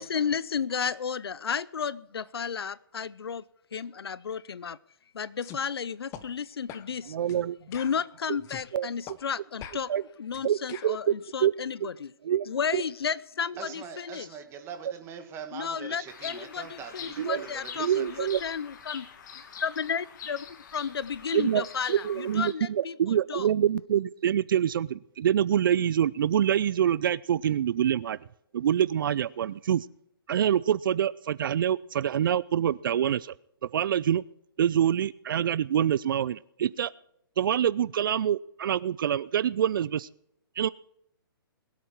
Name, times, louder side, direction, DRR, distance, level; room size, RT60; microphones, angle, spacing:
voice 1, 0.0-3.4 3.7-4.8 5.1-7.1 7.7-9.9 10.2-12.1 12.5-14.3 15.5-19.1 19.6-20.4 20.7-23.5, left 6 dB, 85° left, 21 dB, 0.6 m, -33 dB
sound 1, 5.4-5.6 6.1-6.3 6.7-6.9 7.3-7.4 7.7-8.7 9.1-9.2 9.6-11.0, left 10 dB, 20° left, 0.9 m, -44 dB
voice 2, 7.1-7.6 8.7-8.9 9.9-10.0 10.4-11.1 11.4-11.5 11.8-11.9 12.2-12.5 12.7-12.8 17.2-17.5 17.8-18.4 21.3-28.2 28.5-29.9 30.3-33.3 33.7-34.2 34.6-36.9 37.4-40.1 40.6-40.7, right 9 dB, 60° right, 20 dB, 0.4 m, -26 dB
voice 3, 13.6-18.0, right 7 dB, 20° right, 7 dB, 1.9 m, -43 dB
Bird vocalization bird call bird song, 16.1-22.5, left 7 dB, 50° left, 2.1 m, -44 dB
21.5 x 8.4 x 4.6 m, 0.76 s
hypercardioid pair, 145°, 13 cm